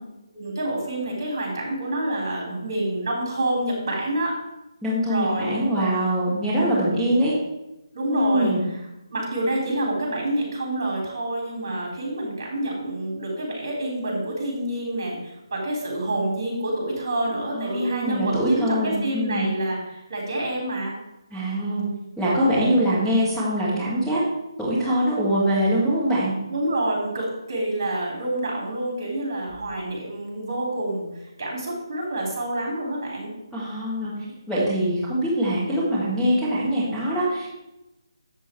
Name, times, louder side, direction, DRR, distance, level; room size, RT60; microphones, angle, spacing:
voice 1, 0.3-4.3 5.1-5.5 6.9-7.0 7.9-8.5 9.1-20.9 22.4-22.8 26.5-31.0 31.4-33.3, right 1 dB, 45° right, -2 dB, 3.6 m, -27 dB
voice 2, 4.8-7.3 8.1-8.6 17.5-19.5 21.3-21.9 22.2-24.2 24.6-26.3 33.5-34.1 34.5-37.5, equal, ahead, -11 dB, 1.7 m, -23 dB
7.7 x 6.8 x 4.5 m, 0.94 s
figure-of-eight pair, 150°, 3 cm